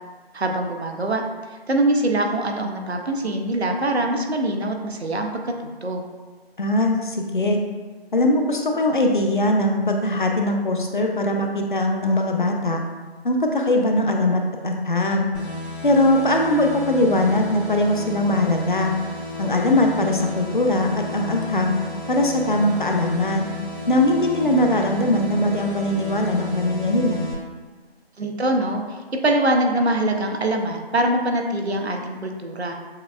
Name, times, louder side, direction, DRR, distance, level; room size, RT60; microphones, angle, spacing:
voice 1, 0.3-1.2 1.7-6.0 28.2-29.0 29.2-32.7, right 1 dB, 80° right, 3 dB, 0.7 m, -23 dB
voice 2, 6.6-7.6 8.1-12.8 13.2-15.3 15.8-18.9 19.4-21.7 22.1-23.5 23.9-27.2, left 1 dB, 50° left, 2 dB, 0.4 m, -21 dB
sound 1, 15.3-27.3, left 2 dB, 90° left, 1.3 m, -33 dB
6.2 x 2.3 x 2.3 m, 1.4 s
figure-of-eight pair, 160°, 32 cm